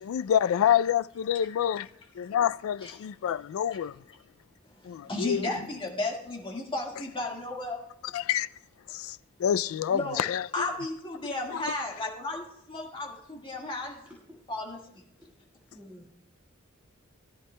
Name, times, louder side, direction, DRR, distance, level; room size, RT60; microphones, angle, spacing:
voice 1, 0.0-1.9 2.2-4.0 4.9-5.5 8.1-8.5 8.9-10.5 11.7-11.8, left 9 dB, 80° left, 0.3 m, -27 dB
voice 2, 4.9-7.8 9.9-10.3 10.5-14.0 14.5-14.8, left 2 dB, 25° left, 1.7 m, -34 dB
voice 3, 12.9-13.2 13.7-14.4 15.7-16.1, equal, 10° right, 1.6 m, -53 dB
19.0 x 11.5 x 2.2 m
head